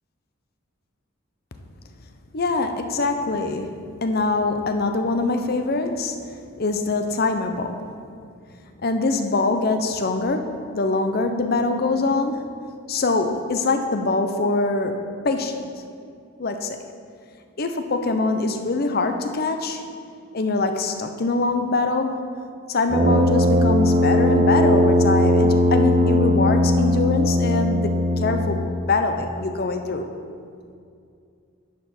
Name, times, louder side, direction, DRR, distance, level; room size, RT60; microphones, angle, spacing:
voice 1, 2.3-6.2 6.6-7.9 8.8-12.5 12.9-15.7 16.4-16.8 17.6-19.8 20.3-22.3 22.7-30.1, left 3 dB, 45° left, 7 dB, 0.6 m, -23 dB
Brass instrument, 22.9-28.8, left 1 dB, 35° right, 0.6 m, -19 dB
10.0 x 4.9 x 5.9 m, 2.4 s
head